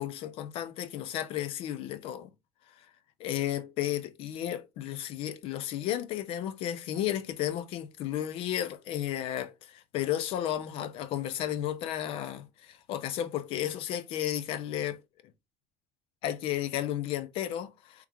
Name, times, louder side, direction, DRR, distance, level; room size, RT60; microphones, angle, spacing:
voice 1, 0.0-2.3 2.8-2.9 3.2-15.0 16.2-18.1, left 11 dB, 60° left, 0.6 m, -33 dB
3.4 x 3.2 x 3.5 m
supercardioid pair, 110°, 11 cm